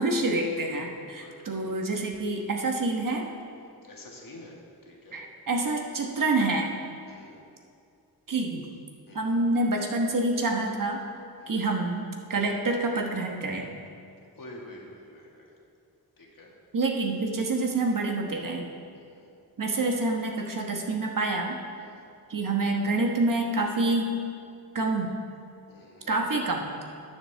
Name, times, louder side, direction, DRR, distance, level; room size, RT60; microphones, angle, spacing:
voice 1, 0.0-3.2 5.1-6.7 8.3-8.7 9.1-11.0 11.5-13.7 16.7-18.7 19.6-21.6 22.3-24.2 24.7-25.2 26.1-26.8, right 2 dB, 55° right, 2 dB, 1.2 m, -27 dB
voice 2, 3.6-4.5 4.8-5.2 7.1-7.4 9.1-9.4 11.4-11.7 14.4-15.5 16.2-16.5 18.9-19.3 21.8-22.0 25.7-26.1, left 1 dB, 55° left, -2 dB, 1.8 m, -48 dB
13.0 x 7.4 x 3.4 m, 2.4 s
cardioid pair, 75°, 40 cm